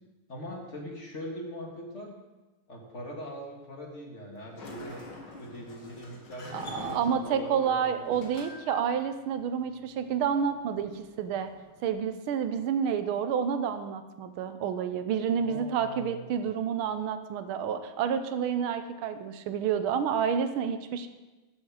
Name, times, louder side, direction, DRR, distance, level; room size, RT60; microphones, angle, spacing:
voice 1, 0.3-2.1 2.7-5.0 5.4-8.1 15.4-16.4, equal, 35° left, -1 dB, 1.9 m, -41 dB
Sliding door, 4.3-11.9, left 3 dB, 60° left, 2.3 m, -47 dB
voice 2, 6.5-11.5 11.8-21.1, right 7 dB, 85° right, 9 dB, 1.6 m, -29 dB
13.5 x 7.4 x 4.8 m, 1.1 s
omnidirectional pair, 2.3 m